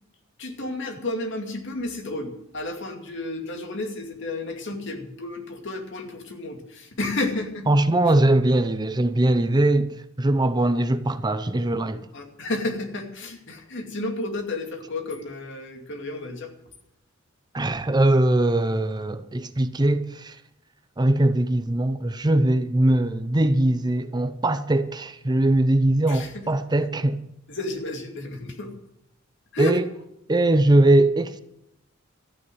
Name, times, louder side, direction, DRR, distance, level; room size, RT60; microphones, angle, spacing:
voice 1, 0.4-7.7 12.1-16.5 26.1-26.5 27.5-28.7 29.5-29.8, left 2 dB, 65° left, 2.5 m, -32 dB
voice 2, 7.7-12.0 17.5-20.4 21.0-27.2 29.6-29.8 30.3-31.4, right 1 dB, 20° right, 0.6 m, -21 dB
13.5 x 9.4 x 7.7 m
head